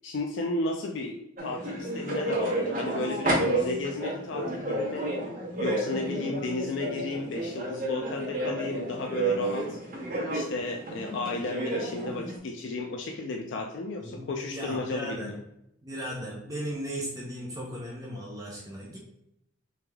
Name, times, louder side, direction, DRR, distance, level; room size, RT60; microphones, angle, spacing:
voice 1, 0.0-5.1 5.6-9.8 10.3-15.4, left 2 dB, 65° left, 2 dB, 0.4 m, -33 dB
sound 1, 1.4-12.3, right 1 dB, 40° right, 1.1 m, -31 dB
voice 2, 14.0-15.3 15.8-19.0, equal, 15° right, -3 dB, 0.7 m, -36 dB
3.4 x 3.3 x 3.4 m, 0.80 s
head